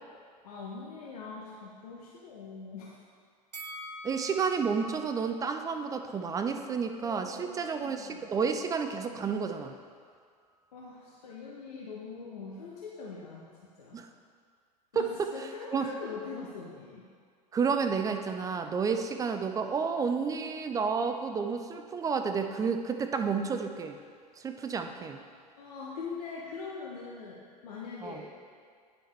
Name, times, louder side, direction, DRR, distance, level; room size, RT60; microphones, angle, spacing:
voice 1, 0.4-3.0 7.0-8.3 10.7-13.5 13.8-14.0 14.9-17.1 25.6-28.4, left 4 dB, 65° left, -4 dB, 0.9 m, -42 dB
Bell, 3.5-6.7 7.1-7.2, right 1 dB, 90° right, 0.5 m, -46 dB
voice 2, 4.0-9.8 13.9-14.1 14.9-15.3 15.7-15.9 17.5-24.0 24.4-25.2 28.0-28.2, right 5 dB, 15° right, 7 dB, 0.4 m, -31 dB
9.7 x 5.3 x 3.3 m, 2.1 s
figure-of-eight pair, 80°, 21 cm